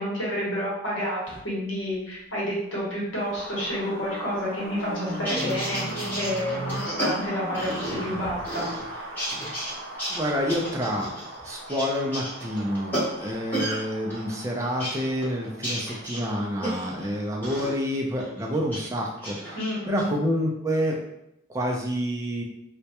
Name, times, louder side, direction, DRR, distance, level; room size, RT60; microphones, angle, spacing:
voice 1, 0.0-5.8 6.2-8.7 19.5-20.1, equal, 80° left, -6 dB, 0.9 m, -29 dB
sound 1, 1.2-1.5 3.3-8.5, equal, 65° left, 0.5 m, -36 dB
Wind, 3.2-17.2, right 1 dB, 80° right, 0.5 m, -40 dB
sound 2, 5.1-8.2 8.4-9.7 10.0-13.8 14.1-17.1 17.4-17.7 18.2-18.9 19.2-20.0, right 1 dB, 10° left, 0.8 m, -32 dB
voice 2, 10.1-11.1 11.4-19.6 19.9-21.0 21.5-22.4, equal, 15° right, -1 dB, 0.3 m, -28 dB
2.2 x 2.1 x 2.8 m, 0.82 s
head